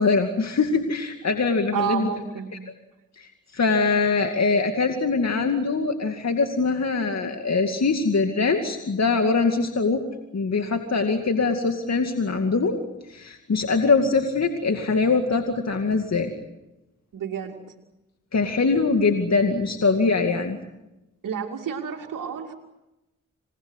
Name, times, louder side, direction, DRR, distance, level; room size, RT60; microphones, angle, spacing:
voice 1, 0.0-2.1 3.2-10.0 10.3-12.8 13.1-16.3 18.3-20.6, left 4 dB, 55° left, 5 dB, 2.3 m, -23 dB
voice 2, 1.7-2.5 17.1-17.6 21.2-22.5, right 7 dB, 85° right, -2 dB, 2.6 m, -30 dB
27.5 x 20.0 x 8.1 m, 0.97 s
cardioid pair, 45°, 32 cm